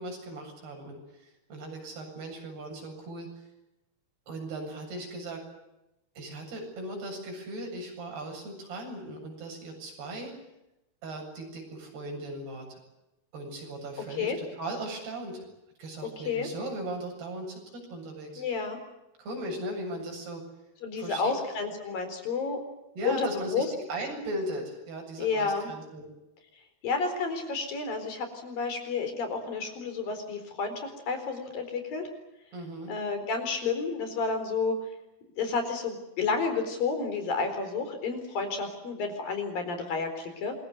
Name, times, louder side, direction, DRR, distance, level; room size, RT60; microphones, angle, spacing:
voice 1, 0.0-3.3 4.3-5.4 6.2-10.3 11.0-12.8 13.3-15.4 15.8-18.4 19.2-20.4 21.0-21.3 23.0-26.1 32.5-32.9, right 1 dB, 85° right, 2 dB, 9.8 m, -38 dB
voice 2, 18.4-18.8 20.8-22.6 23.0-23.7 25.2-25.7 26.8-32.1 32.9-34.8 35.4-40.5, left 4 dB, 60° left, 7 dB, 5.9 m, -31 dB
27.5 x 22.5 x 8.0 m, 0.92 s
omnidirectional pair, 4.5 m